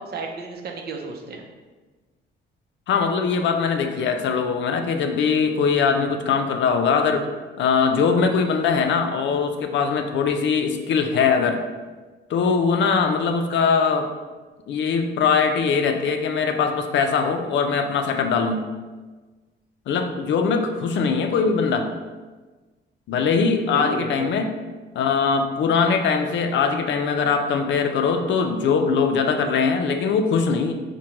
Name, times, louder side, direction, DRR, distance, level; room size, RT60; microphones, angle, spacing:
voice 1, 0.0-1.4 23.7-24.3, right 3 dB, 55° right, 2 dB, 0.6 m, -33 dB
voice 2, 2.9-7.3 7.6-11.6 12.3-14.1 14.7-18.6 19.9-21.9 23.1-24.5 24.9-30.7, left 5 dB, 65° left, 5 dB, 0.5 m, -21 dB
4.9 x 2.2 x 2.9 m, 1.3 s
cardioid pair, 90°, 20 cm